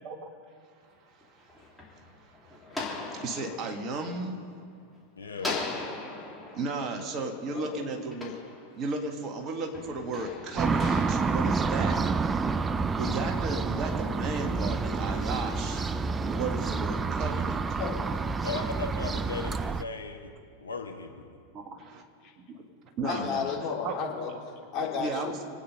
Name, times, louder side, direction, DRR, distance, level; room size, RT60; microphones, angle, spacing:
voice 1, 0.8-4.4 6.5-8.3 8.8-12.0 13.0-15.8 16.3-17.6 21.5-22.0 22.5-22.7 23.0-23.6 23.8-24.0 24.9-25.6, right 3 dB, 35° right, 4 dB, 1.8 m, -35 dB
sound 1, 1.2-4.9 5.4-9.1 9.7-12.4, left 3 dB, ahead, 3.1 m, -40 dB
voice 2, 5.2-5.6 18.4-20.3 20.6-21.3, left 4 dB, 75° left, 3 dB, 1.5 m, -37 dB
voice 3, 7.3-7.9 17.8-18.2 22.2-22.3 23.0-25.3, left 6 dB, 35° left, -2 dB, 3.3 m, -33 dB
sound 2, 10.6-19.8, right 4 dB, 15° right, 0.5 m, -28 dB
27.0 x 9.2 x 5.4 m, 2.2 s
figure-of-eight pair, 90°, 0 cm